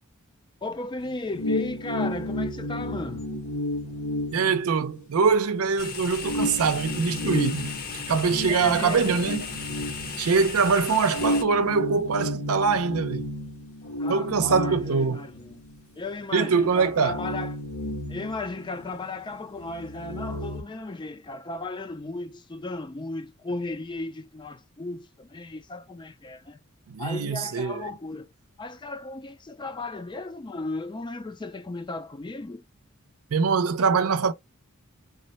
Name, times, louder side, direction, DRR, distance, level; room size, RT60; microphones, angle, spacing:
voice 1, 0.6-3.3 8.5-9.4 14.0-15.6 16.0-17.6 18.1-26.6 27.0-28.3 28.6-32.6, left 3 dB, 20° left, 0.4 m, -35 dB
sound 1, 1.0-5.3 5.7-5.8 6.2-10.6 11.1-15.8 16.1-16.2 16.6-19.1 19.4-20.6, left 1 dB, 80° left, 1.4 m, -32 dB
voice 2, 4.3-7.7 8.1-9.5 10.2-13.3 14.1-15.3 16.3-17.2 26.9-27.9 33.3-34.3, right 5 dB, 75° right, 0.5 m, -23 dB
sound 2, 5.8-11.4, left 5 dB, 45° left, 0.8 m, -36 dB
3.9 x 2.1 x 4.0 m
head